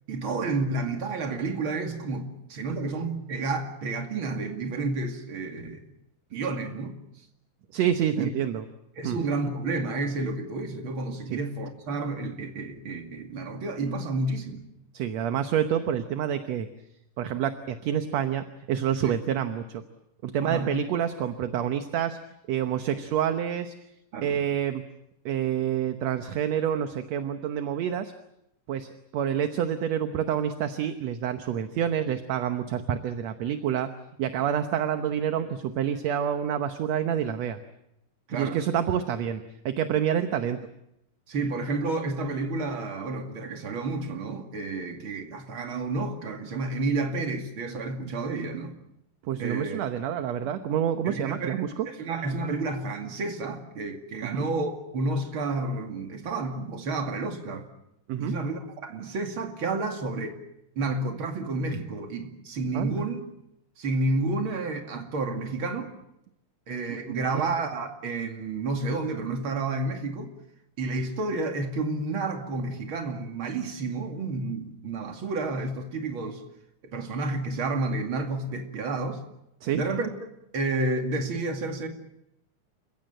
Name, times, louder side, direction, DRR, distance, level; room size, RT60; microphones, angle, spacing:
voice 1, 0.1-5.8 6.3-6.9 8.2-8.3 9.0-14.7 19.0-19.1 20.4-20.7 24.1-24.4 38.3-38.6 41.3-48.8 49.4-49.8 51.0-57.7 58.2-60.4 60.8-63.2 63.8-65.9 66.7-70.3 70.8-76.4 76.8-79.2 79.7-80.1 80.5-81.9, right 3 dB, 45° right, 2.9 m, -30 dB
voice 2, 7.7-8.7 9.0-9.2 11.3-11.4 14.9-16.7 17.2-19.8 20.2-22.2 22.5-23.7 24.2-24.8 25.3-28.1 28.7-33.9 34.2-37.6 38.3-40.6 49.2-51.9 54.2-54.5 58.1-58.4 62.7-63.1 67.1-67.4 79.6-79.8, right 9 dB, 65° right, 2.1 m, -28 dB
29.0 x 16.0 x 9.0 m
omnidirectional pair, 3.5 m